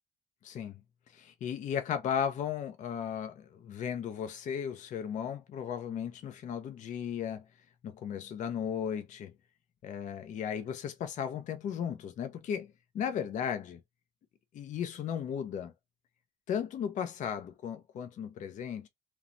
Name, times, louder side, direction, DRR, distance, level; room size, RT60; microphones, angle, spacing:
voice 1, 0.4-0.8 1.1-7.4 7.8-9.3 9.8-13.8 14.5-15.7 16.5-18.9, left 8 dB, 45° left, 0.4 m, -35 dB
3.0 x 2.0 x 2.5 m
cardioid pair, 110°, 17 cm